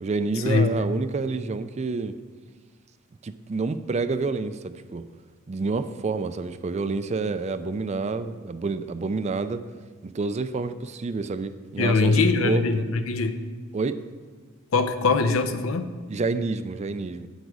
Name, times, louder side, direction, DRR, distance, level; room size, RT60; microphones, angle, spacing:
voice 1, 0.0-2.1 3.2-5.0 5.5-9.6 10.0-12.9 13.7-14.0 16.1-17.3, right 4 dB, 35° right, 12 dB, 0.4 m, -28 dB
voice 2, 11.8-13.4 14.7-15.9, left 4 dB, 80° left, 9 dB, 0.7 m, -22 dB
8.1 x 8.1 x 4.8 m, 1.5 s
head